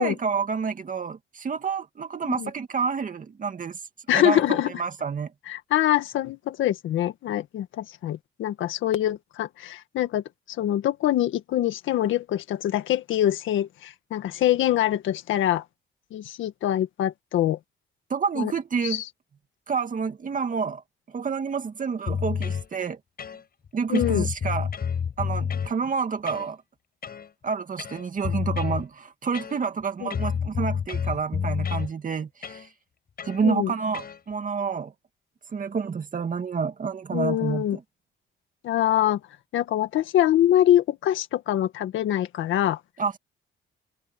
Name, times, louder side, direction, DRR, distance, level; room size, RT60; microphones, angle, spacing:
voice 1, 0.0-3.8 4.1-5.3 18.1-19.0 19.7-20.8 21.1-23.0 23.7-24.7 25.2-26.6 27.4-32.7 33.2-34.9 35.5-37.8 43.0-43.2, right 5 dB, 40° right, 2.3 m, -29 dB
voice 2, 4.1-4.7 5.5-10.2 10.6-15.6 16.1-17.6 18.4-18.5 18.8-19.0 23.9-24.3 30.0-30.2 33.4-33.7 37.1-37.8 38.6-39.2 39.5-42.8, left 12 dB, 80° left, 1.8 m, -24 dB
sound 1, 22.1-22.7 23.2-23.7 23.9-25.7 26.3-26.5 27.0-27.3 27.8-28.8 29.3-29.8 30.1-31.9 32.4-32.7 33.2-33.4 33.9-34.2, left 7 dB, 50° left, 6.6 m, -29 dB
cardioid pair, 90°, 20 cm